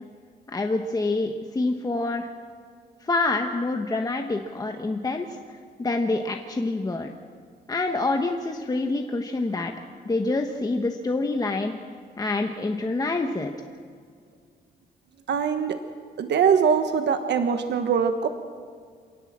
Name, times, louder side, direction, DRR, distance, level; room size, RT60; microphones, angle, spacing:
voice 1, 0.5-2.3 3.0-5.4 5.8-7.1 7.7-9.7 10.0-11.7 12.2-13.5, left 2 dB, 20° left, 4 dB, 1.2 m, -26 dB
voice 2, 15.3-15.8 16.2-18.3, right 7 dB, 80° right, 7 dB, 1.3 m, -22 dB
27.5 x 18.5 x 7.5 m, 2.1 s
wide cardioid pair, 140°, 18 cm